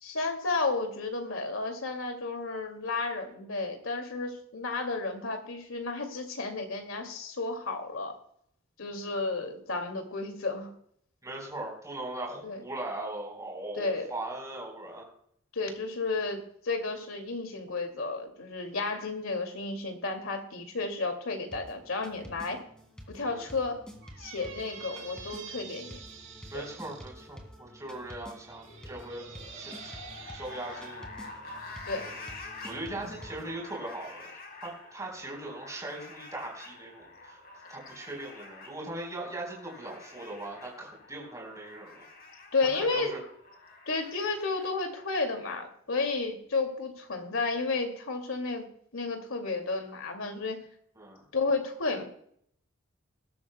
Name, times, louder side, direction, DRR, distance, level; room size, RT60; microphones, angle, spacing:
voice 1, 0.0-8.1 8.8-10.7 12.4-12.6 13.8-14.1 15.5-22.6 23.1-23.8 24.2-26.0 26.5-26.6 31.9-32.1 32.9-33.1 42.5-43.2 43.9-48.7 48.9-50.6 51.3-52.0, left 3 dB, 85° left, 5 dB, 2.3 m, -32 dB
voice 2, 11.2-15.0 23.2-23.4 26.5-29.2 29.5-29.9 30.3-31.0 32.0-32.1 32.6-34.3 34.6-37.4 37.7-42.0 42.7-43.2 51.0-51.2, right 2 dB, 15° right, -1 dB, 4.1 m, -39 dB
sound 1, 21.5-33.5, equal, 5° left, 2.0 m, -49 dB
Squeak, 24.0-27.1 27.9-31.0, right 7 dB, 65° right, 5.7 m, -47 dB
sound 2, 28.5-45.6, left 3 dB, 50° left, 3.8 m, -48 dB
20.5 x 12.5 x 2.2 m, 0.67 s
head